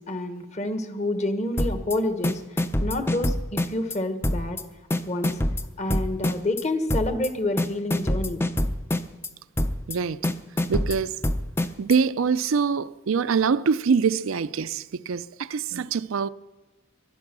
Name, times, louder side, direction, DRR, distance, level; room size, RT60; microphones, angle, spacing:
voice 1, 0.0-4.6 5.1-5.4 5.8-8.4, left 1 dB, 30° left, 1.3 m, -28 dB
sound 1, 1.6-2.0 2.2-4.0 4.2-4.6 4.9-6.6 6.9-7.3 7.6-9.3 9.6-10.0 10.2-12.0, left 1 dB, 10° left, 0.5 m, -25 dB
voice 2, 9.9-10.2 10.7-11.2 11.8-16.3, right 5 dB, 70° right, 0.4 m, -24 dB
23.0 x 9.6 x 6.1 m
head